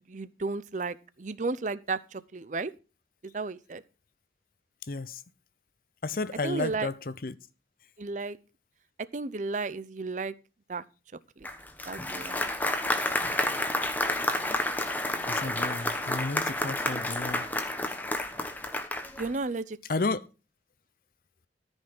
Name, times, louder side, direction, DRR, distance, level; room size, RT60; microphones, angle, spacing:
voice 1, 0.1-2.7 3.3-3.8 6.4-6.9 8.0-8.4 9.1-10.3 10.7-10.8 11.4-11.5 11.9-12.5 19.2-20.1, right 3 dB, 45° right, 0.6 m, -33 dB
voice 2, 4.9-5.2 6.0-7.3 15.3-17.4 19.9-20.2, left 3 dB, 50° left, 0.6 m, -32 dB
Applause, 11.4-19.3, left 1 dB, 10° left, 1.1 m, -30 dB
14.0 x 5.4 x 5.9 m
head